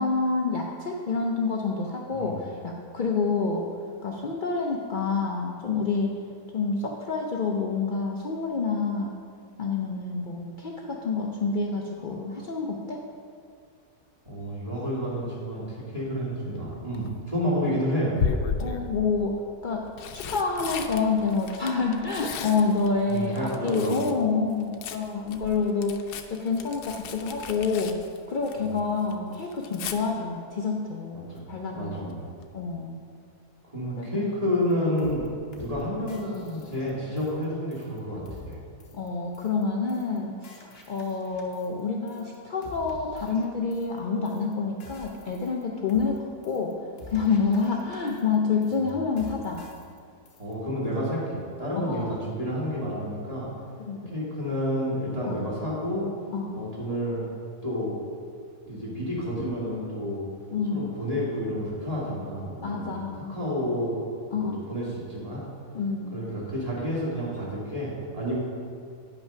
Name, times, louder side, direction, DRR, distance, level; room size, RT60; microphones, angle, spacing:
voice 1, 0.0-3.7 4.0-6.1 6.5-9.1 9.6-13.0 18.6-28.0 28.3-32.1 32.5-33.0 34.0-34.3 38.9-46.8 47.1-49.7 51.9-52.1 53.8-54.3 55.3-55.5 56.3-56.7 60.5-61.0 62.6-63.4 64.3-64.7 65.7-66.3, left 4 dB, 65° left, 0 dB, 0.4 m, -28 dB
voice 2, 14.2-18.2 23.0-24.1 31.1-31.4 31.8-32.2 33.7-35.2 35.6-38.6 48.7-48.9 50.4-53.5 54.1-56.1 56.5-57.3 57.6-57.9 58.7-60.3 60.7-64.0 64.4-65.4 66.1-68.4, equal, 20° right, -8 dB, 2.6 m, -30 dB
Tearing, 16.7-17.1 18.2-18.9 19.7-24.2 24.5-28.8 29.1-30.0 31.8-32.1 32.4-32.5, left 6 dB, 85° left, 1.2 m, -35 dB
sound 1, 34.7-34.8 35.0-35.3 35.5-35.8 36.1-37.4 37.7-38.0 38.2-38.5 38.8-39.1 39.3-39.6 39.9-40.2 40.4-41.8 42.1-42.3 42.6-44.0 44.2-44.5 44.8-45.6 45.9-46.2 46.4-46.7 47.0-48.3 48.6-48.9 49.2-50.0 50.2-50.5, left 3 dB, 45° left, 1.0 m, -47 dB
9.3 x 5.7 x 5.6 m, 2.3 s
omnidirectional pair, 1.7 m